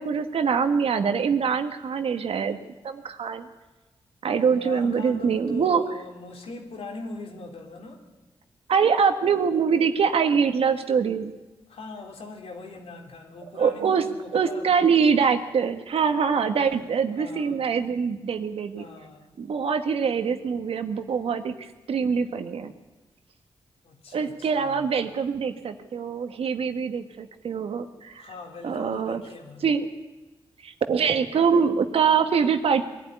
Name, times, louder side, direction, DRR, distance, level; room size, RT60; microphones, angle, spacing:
voice 1, 0.0-2.6 2.8-3.5 4.2-5.8 8.7-11.3 13.5-14.0 14.3-18.9 19.4-22.7 24.1-28.2 28.6-29.2 29.6-29.9 30.6-32.9, right 6 dB, 80° right, 8 dB, 1.6 m, -24 dB
voice 2, 4.4-8.0 11.7-14.7 16.6-16.8 17.2-17.6 18.8-19.4 23.8-25.0 28.1-29.7, left 3 dB, 85° left, 2 dB, 3.5 m, -41 dB
21.5 x 12.5 x 10.0 m, 1.2 s
cardioid pair, 70°, 10 cm